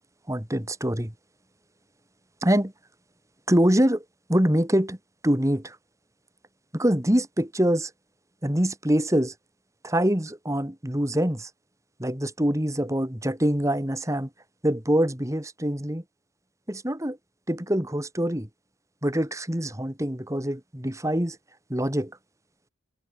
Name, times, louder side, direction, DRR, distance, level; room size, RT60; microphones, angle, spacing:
voice 1, 0.3-1.1 2.4-2.7 3.5-4.0 4.3-5.0 5.2-5.8 6.7-7.9 8.4-9.3 9.8-11.5 12.0-14.3 14.6-16.0 16.7-17.2 17.5-18.5 19.0-21.4 21.7-22.1, equal, 15° right, 2.3 m, -24 dB
head